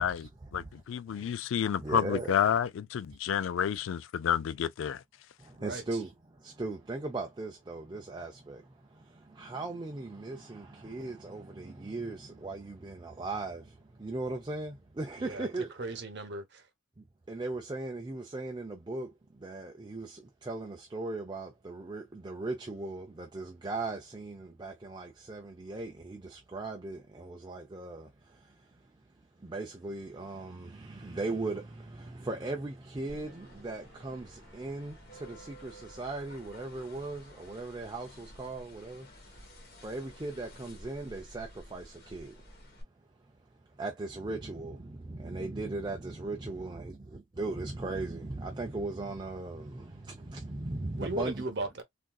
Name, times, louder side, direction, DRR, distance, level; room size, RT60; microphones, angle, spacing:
voice 1, 0.0-0.8 1.1-1.3 1.8-2.3 5.4-16.0 17.0-39.5 39.8-42.6 43.0-51.4, right 2 dB, 20° right, 0.5 m, -39 dB
voice 2, 0.5-5.0, left 8 dB, 75° left, 0.3 m, -30 dB
voice 3, 15.8-16.7 51.0-51.8, right 2 dB, 60° right, 0.9 m, -36 dB
sound 1, 33.1-42.8, equal, 50° left, 1.4 m, -52 dB
3.6 x 2.6 x 2.3 m
head